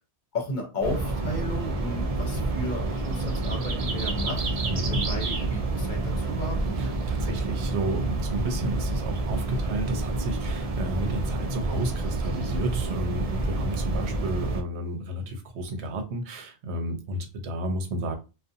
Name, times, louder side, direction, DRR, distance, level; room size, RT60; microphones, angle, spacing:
voice 1, 0.3-4.4 4.9-6.7, left 1 dB, 50° left, 1 dB, 0.8 m, -34 dB
sound 1, 0.8-14.6, right 2 dB, 50° right, 0.4 m, -28 dB
voice 2, 4.7-5.0 6.8-18.2, right 1 dB, 85° right, 6 dB, 0.9 m, -32 dB
2.5 x 2.2 x 2.6 m, 0.29 s
omnidirectional pair, 1.1 m